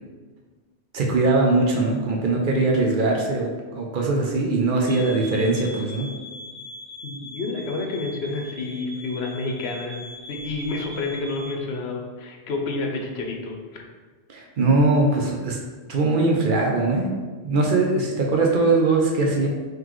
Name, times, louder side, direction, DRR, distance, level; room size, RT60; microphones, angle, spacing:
voice 1, 0.9-6.1 14.3-15.6 15.9-17.1 17.4-19.5, right 3 dB, 55° right, 0 dB, 0.7 m, -21 dB
sound 1, 4.9-11.6, left 1 dB, 85° right, 1.2 m, -40 dB
voice 2, 7.0-10.0 10.3-13.6, left 3 dB, 80° left, 2 dB, 0.9 m, -29 dB
3.8 x 3.2 x 3.0 m, 1.4 s
omnidirectional pair, 1.1 m